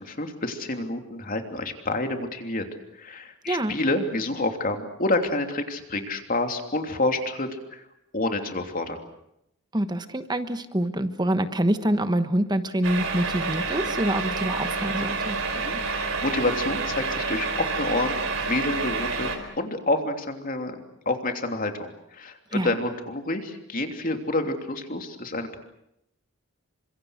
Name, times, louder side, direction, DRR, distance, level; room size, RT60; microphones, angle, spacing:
voice 1, 0.0-2.7 2.9-7.9 8.1-9.0 15.5-25.6, left 2 dB, 40° left, 5 dB, 3.1 m, -28 dB
voice 2, 9.7-15.4 22.5-22.7, right 1 dB, 20° right, 10 dB, 1.2 m, -26 dB
sound 1, 12.8-19.4, right 4 dB, 65° right, 4.7 m, -28 dB
29.5 x 25.5 x 6.5 m, 0.79 s
head